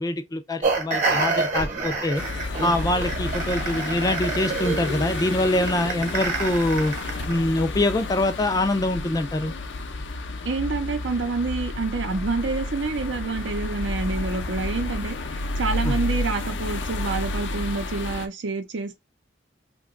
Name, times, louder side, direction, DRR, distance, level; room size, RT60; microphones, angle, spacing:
voice 1, 0.0-2.2 2.6-6.9 7.3-9.5 15.8-16.0, left 1 dB, 20° left, 0.3 m, -24 dB
sound 1, 0.6-7.4, right 3 dB, 45° right, 0.9 m, -28 dB
sound 2, 2.1-18.3, left 2 dB, 75° left, 0.5 m, -31 dB
voice 2, 10.4-15.2 15.6-18.9, right 3 dB, 80° right, 0.6 m, -27 dB
2.9 x 2.2 x 3.6 m
head